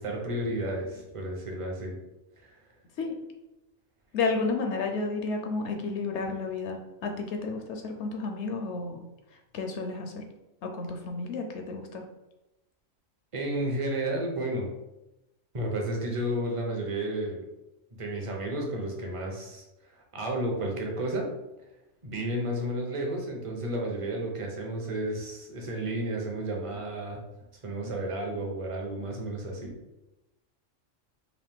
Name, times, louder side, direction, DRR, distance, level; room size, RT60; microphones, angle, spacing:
voice 1, 0.0-2.0 2.4-2.6 13.3-14.7 15.5-17.4 18.0-19.6 19.9-21.3 22.0-27.2 27.6-29.7, right 1 dB, 35° right, 0 dB, 0.6 m, -32 dB
voice 2, 4.1-9.0 9.3-10.2 10.6-12.0, left 3 dB, 70° left, 4 dB, 0.8 m, -32 dB
4.0 x 2.5 x 3.5 m, 0.95 s
omnidirectional pair, 1.3 m